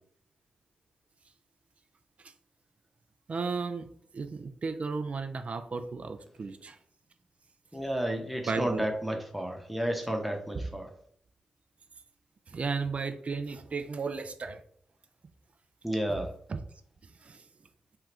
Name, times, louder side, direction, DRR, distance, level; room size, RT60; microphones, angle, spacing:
voice 1, 3.3-3.9 4.1-6.8 8.5-8.8 12.5-14.6 16.5-16.6 17.2-17.4, right 4 dB, 50° right, 8 dB, 0.4 m, -34 dB
voice 2, 7.7-10.9 15.8-16.3, right 1 dB, ahead, 3 dB, 0.8 m, -31 dB
2.7 x 2.3 x 3.3 m, 0.63 s
supercardioid pair, 40°, 3 cm